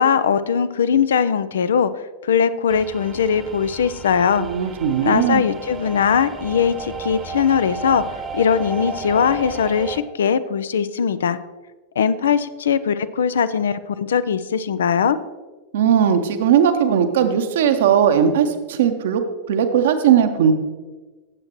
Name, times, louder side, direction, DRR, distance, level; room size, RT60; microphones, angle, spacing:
voice 1, 0.0-1.9 2.2-4.5 5.0-8.0 8.3-11.4 12.0-15.2, left 7 dB, 65° left, 14 dB, 0.4 m, -20 dB
sound 1, 2.7-10.0, right 3 dB, 20° right, 1.0 m, -33 dB
voice 2, 4.4-5.4 15.7-19.2 19.5-20.5, right 8 dB, 60° right, 8 dB, 0.9 m, -18 dB
16.5 x 7.5 x 3.0 m, 1.3 s
figure-of-eight pair, 90°, 0 cm